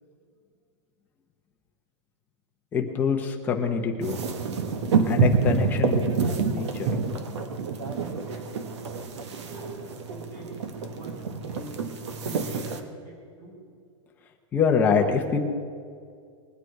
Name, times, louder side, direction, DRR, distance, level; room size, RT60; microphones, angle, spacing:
voice 1, 2.7-4.2 5.0-6.0 6.5-6.9 14.5-15.4, left 6 dB, 10° left, 3 dB, 0.9 m, -25 dB
sound 1, 4.0-12.8, right 5 dB, 65° right, 1.4 m, -27 dB
voice 2, 8.0-8.6 9.3-10.5 10.8-11.7 12.1-13.6, right 2 dB, 30° right, 0 dB, 4.5 m, -45 dB
21.0 x 9.0 x 4.7 m, 2.2 s
supercardioid pair, 180°, 16 cm